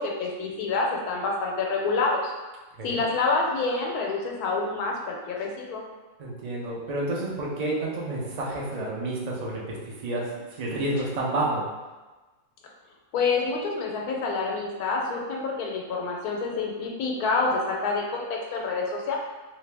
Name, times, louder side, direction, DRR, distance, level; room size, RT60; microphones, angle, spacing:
voice 1, 0.0-2.3 2.8-5.8 13.1-19.2, left 3 dB, 85° left, 0 dB, 1.1 m, -27 dB
voice 2, 6.2-11.6, right 2 dB, 60° right, -4 dB, 0.4 m, -30 dB
2.8 x 2.7 x 3.3 m, 1.2 s
omnidirectional pair, 1.6 m